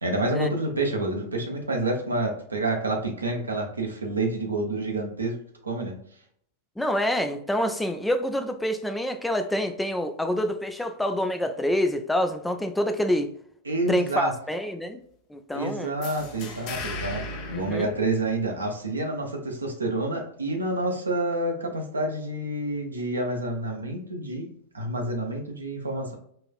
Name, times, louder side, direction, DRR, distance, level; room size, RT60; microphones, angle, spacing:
voice 1, 0.0-5.4 5.6-6.0 13.6-14.3 15.5-17.2 17.5-24.5 24.7-26.1, right 2 dB, 75° right, 0.8 m, -28 dB
voice 2, 6.8-13.3 13.9-15.0 15.3-15.9 17.5-17.9, left 1 dB, 5° left, 0.3 m, -27 dB
sound 1, 16.0-18.7, left 2 dB, 45° left, 0.7 m, -37 dB
4.1 x 2.5 x 2.4 m
figure-of-eight pair, 90°, 0 cm